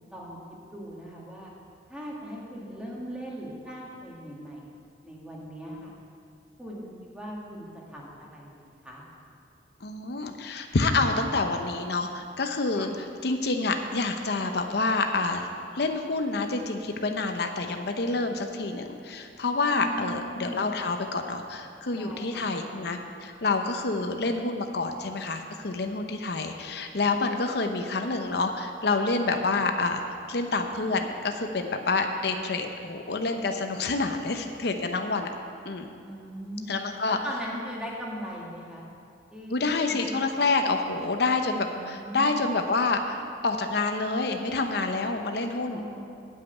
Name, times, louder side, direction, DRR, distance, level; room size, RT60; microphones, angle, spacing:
voice 1, 0.7-1.5 1.9-4.7 5.0-6.0 6.6-9.0 12.7-12.9 19.8-20.7 21.9-22.5 36.0-36.7 37.1-38.9 39.3-39.6 39.9-40.4 41.7-42.4 45.7-46.3, equal, 5° right, -4 dB, 2.0 m, -39 dB
voice 2, 9.8-12.9 13.2-15.5 15.7-30.0 30.3-35.3 35.6-35.9 36.7-37.2 39.5-45.8, left 3 dB, 65° left, 5 dB, 0.8 m, -28 dB
8.7 x 7.6 x 9.0 m, 2.5 s
head